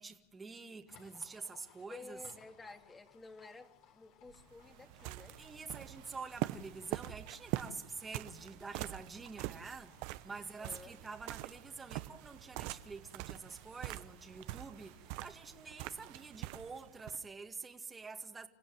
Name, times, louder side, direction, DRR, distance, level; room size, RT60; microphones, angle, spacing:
voice 1, 0.0-2.2 5.4-18.5, right 4 dB, 15° right, 2.0 m, -47 dB
Livestock farm animals working animals, 0.9-16.1, left 7 dB, 55° left, 4.7 m, -65 dB
voice 2, 1.9-5.4 10.6-11.0, left 3 dB, 15° left, 2.7 m, -52 dB
sound 1, 4.3-17.2, right 17 dB, 60° right, 1.0 m, -44 dB
29.0 x 16.0 x 9.4 m
hypercardioid pair, 110°, 0 cm